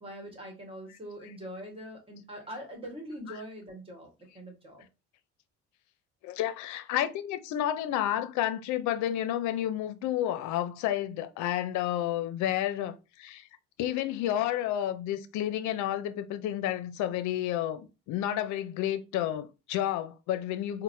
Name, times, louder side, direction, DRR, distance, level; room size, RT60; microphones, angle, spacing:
voice 1, 0.0-4.1 4.3-4.8, equal, 20° right, 1.4 m, -43 dB
voice 2, 6.2-13.4 13.8-20.8, left 12 dB, 75° left, 0.5 m, -31 dB
3.9 x 2.1 x 2.6 m
cardioid pair, 95°, 30 cm